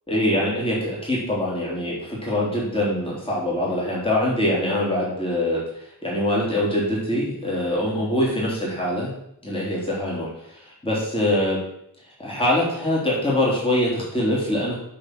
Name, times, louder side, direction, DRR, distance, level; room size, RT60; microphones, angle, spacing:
voice 1, 0.1-5.6 6.0-9.1 9.4-11.6 12.2-14.8, left 1 dB, 15° left, -5 dB, 3.0 m, -23 dB
8.7 x 4.2 x 6.0 m, 0.76 s
wide cardioid pair, 65°, 41 cm